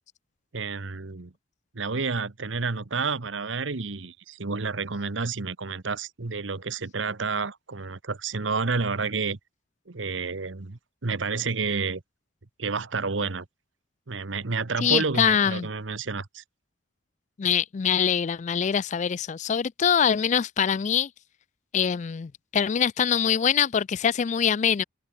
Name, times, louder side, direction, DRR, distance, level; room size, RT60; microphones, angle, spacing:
voice 1, 0.5-1.3 1.7-9.4 9.9-12.0 12.6-13.5 14.1-16.4, right 4 dB, 80° right, 1.1 m, -30 dB
voice 2, 14.8-15.7 17.4-21.1 21.7-24.8, left 8 dB, 40° left, 0.3 m, -24 dB
head